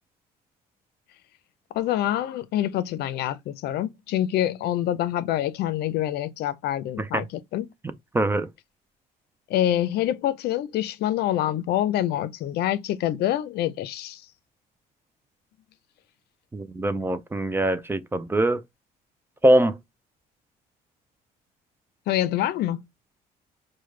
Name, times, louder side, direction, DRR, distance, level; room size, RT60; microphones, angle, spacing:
voice 1, 1.7-7.7 9.5-14.2 22.1-22.8, left 12 dB, 70° left, 0.5 m, -26 dB
voice 2, 8.1-8.5 16.5-18.6 19.4-19.8, right 1 dB, 15° right, 0.3 m, -22 dB
4.8 x 2.2 x 3.1 m
cardioid pair, 110°, 17 cm